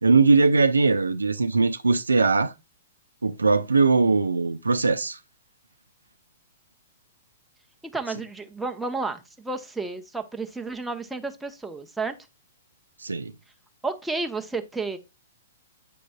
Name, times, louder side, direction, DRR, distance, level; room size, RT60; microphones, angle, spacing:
voice 1, 0.0-2.5 3.2-5.2 13.0-13.3, right 4 dB, 80° right, 0.4 m, -20 dB
voice 2, 7.8-12.1 13.8-15.0, right 3 dB, 5° right, 0.7 m, -31 dB
8.5 x 5.1 x 2.2 m
figure-of-eight pair, 110°, 0 cm